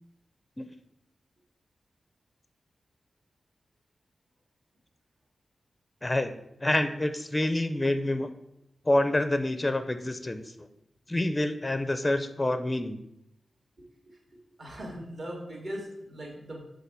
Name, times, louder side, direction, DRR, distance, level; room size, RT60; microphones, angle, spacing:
voice 1, 6.0-6.3 6.6-8.3 8.9-10.4 11.1-13.0, left 1 dB, 20° left, 10 dB, 0.5 m, -27 dB
voice 2, 14.6-16.6, equal, 50° right, -1 dB, 2.1 m, -39 dB
5.7 x 3.8 x 6.1 m, 0.82 s
wide cardioid pair, 100°, 0 cm